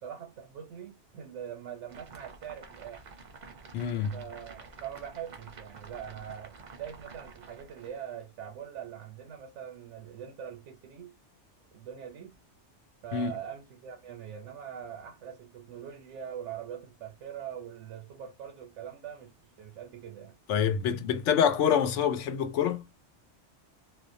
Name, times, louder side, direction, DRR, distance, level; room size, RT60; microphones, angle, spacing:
voice 1, 0.0-3.0 4.1-11.2 11.7-12.4 13.0-20.4, right 9 dB, 85° right, 0.9 m, -43 dB
sound 1, 1.9-8.1, right 4 dB, 50° right, 0.6 m, -49 dB
voice 2, 3.7-4.2 13.1-13.3 20.5-22.8, left 8 dB, 85° left, 0.9 m, -26 dB
2.4 x 2.1 x 2.5 m
omnidirectional pair, 1.2 m